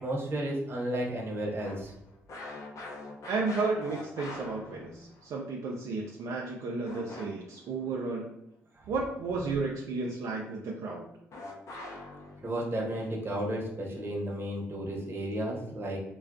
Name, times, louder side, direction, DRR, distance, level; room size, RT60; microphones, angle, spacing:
voice 1, 0.0-1.9 8.8-8.9 12.4-16.0, right 1 dB, 40° right, -2 dB, 0.8 m, -33 dB
sound 1, 1.6-5.3 6.9-7.6 11.3-12.5, left 2 dB, 60° left, 0.6 m, -43 dB
voice 2, 3.3-8.3 8.9-11.0, right 3 dB, 70° right, -1 dB, 0.4 m, -33 dB
2.3 x 2.2 x 2.4 m, 0.81 s
supercardioid pair, 50°, 6 cm